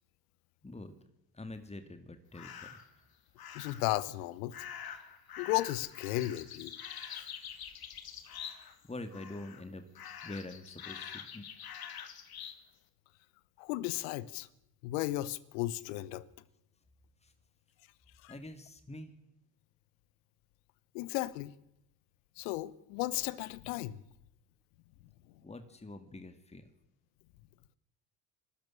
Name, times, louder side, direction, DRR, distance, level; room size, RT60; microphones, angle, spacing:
voice 1, 1.3-2.8 8.9-9.8 10.2-11.5 17.2-17.3 18.3-19.1 25.4-26.7, left 2 dB, 10° left, 2.2 m, -45 dB
sound 1, 2.3-2.9 3.4-3.9 4.5-8.8 9.1-9.6 9.9-12.6, left 8 dB, 45° left, 2.2 m, -46 dB
voice 2, 3.5-4.5 5.4-6.7 7.1-7.3 13.6-14.5 14.8-16.2 18.2-18.4 20.9-21.5 22.4-24.0, left 17 dB, 70° left, 1.1 m, -35 dB
21.5 x 13.0 x 9.9 m
hypercardioid pair, 55°, 50 cm